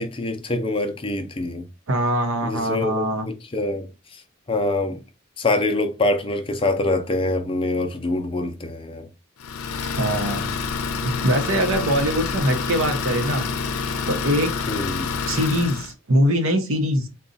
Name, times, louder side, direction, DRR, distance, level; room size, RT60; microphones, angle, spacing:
voice 1, 0.0-1.6 2.4-3.9 4.5-5.0 5.4-9.1 14.7-15.1, left 2 dB, 25° left, 0.4 m, -25 dB
voice 2, 1.9-3.3 10.0-10.5 11.0-13.5 14.1-14.5 15.3-17.1, equal, 70° right, 0.8 m, -22 dB
Idling, 9.4-15.9, left 5 dB, 85° left, 0.5 m, -27 dB
3.9 x 2.3 x 3.8 m
head